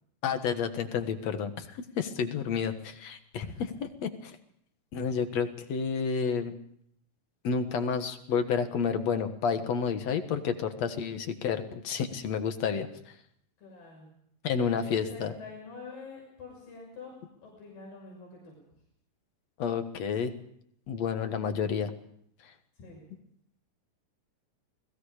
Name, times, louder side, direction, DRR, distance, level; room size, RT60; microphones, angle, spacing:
voice 1, 0.2-4.4 4.9-6.5 7.4-12.9 14.4-15.3 19.6-20.3 20.9-21.9, left 6 dB, 55° left, 8 dB, 2.4 m, -30 dB
voice 2, 3.4-3.8 13.6-14.1 14.7-17.1 17.4-18.6 22.8-23.1, left 3 dB, 85° left, -2 dB, 8.0 m, -46 dB
29.5 x 20.0 x 5.0 m, 0.70 s
omnidirectional pair, 3.9 m